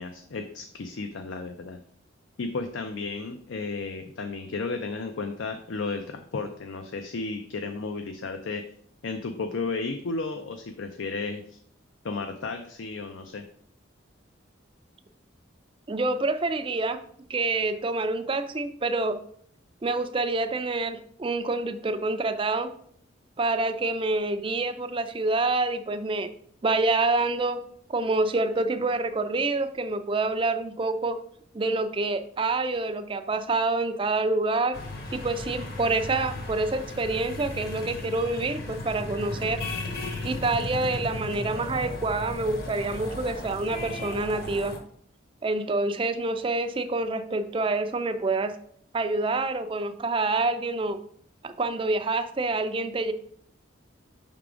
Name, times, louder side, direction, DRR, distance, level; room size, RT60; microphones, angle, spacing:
voice 1, 0.0-1.8 2.4-8.7 9.0-11.6 12.0-13.4, left 3 dB, 70° left, 6 dB, 0.5 m, -33 dB
voice 2, 15.9-17.0 17.3-19.2 19.8-22.7 23.4-26.3 26.6-27.6 27.9-31.2 31.5-34.8 35.1-39.6 40.2-44.8 45.4-48.6 48.9-51.0 51.4-53.1, right 3 dB, 25° right, 9 dB, 0.4 m, -27 dB
sound 1, 34.7-44.8, left 2 dB, 50° left, 1.1 m, -35 dB
5.7 x 3.7 x 4.9 m, 0.63 s
head